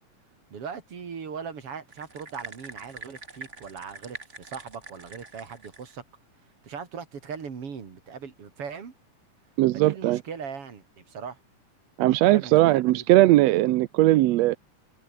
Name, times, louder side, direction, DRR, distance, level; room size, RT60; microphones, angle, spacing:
voice 1, 0.5-6.0 6.6-8.9 9.7-11.4 12.1-13.3, right 6 dB, 50° right, 3.7 m, -39 dB
sound 1, 1.9-5.9, right 3 dB, 25° right, 2.6 m, -44 dB
voice 2, 9.6-10.2 12.0-14.6, right 16 dB, 75° right, 1.7 m, -19 dB
open air
omnidirectional pair, 3.4 m